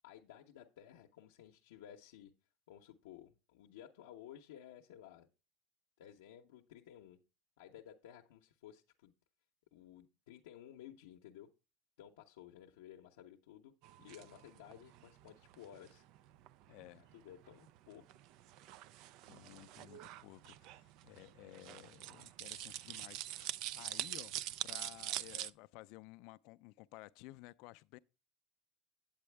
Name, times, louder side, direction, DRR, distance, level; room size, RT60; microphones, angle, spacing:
voice 1, 0.0-2.3 2.7-5.3 6.0-7.2 7.6-9.1 9.7-11.5 12.0-13.7 14.0-16.0 17.1-18.2, left 10 dB, 90° left, 0.7 m, -55 dB
sound 1, 13.8-25.5, right 14 dB, 60° right, 0.4 m, -46 dB
voice 2, 16.7-17.1 19.3-28.0, left 20 dB, 65° left, 0.4 m, -55 dB
8.7 x 8.3 x 3.3 m
supercardioid pair, 115°, 0 cm